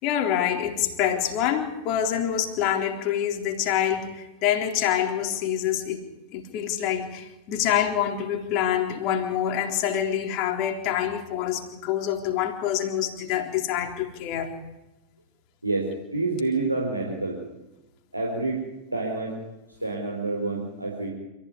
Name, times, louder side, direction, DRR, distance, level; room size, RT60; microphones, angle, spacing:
voice 1, 0.0-6.0 6.3-14.5, left 10 dB, 40° left, 4 dB, 3.8 m, -26 dB
voice 2, 15.6-17.4 18.1-18.6 18.9-19.4 19.8-21.1, right 3 dB, 85° right, 0 dB, 4.8 m, -28 dB
27.5 x 16.0 x 9.9 m, 1.0 s
figure-of-eight pair, 90°, 0 cm